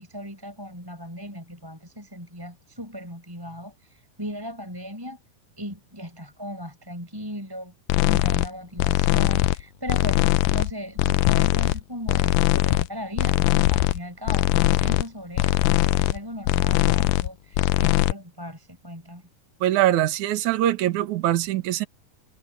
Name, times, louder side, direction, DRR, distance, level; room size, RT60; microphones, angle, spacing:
voice 1, 0.0-5.2 5.6-7.7 8.0-19.3, equal, 5° right, 5.1 m, -37 dB
sound 1, 7.9-8.5 8.8-9.6 9.9-10.7 11.0-11.8 12.1-12.9 13.2-14.0 14.3-15.0 15.4-16.2 16.4-17.3 17.5-18.1, left 17 dB, 80° left, 2.1 m, -21 dB
voice 2, 19.6-21.9, right 13 dB, 65° right, 2.7 m, -22 dB
omnidirectional pair, 3.9 m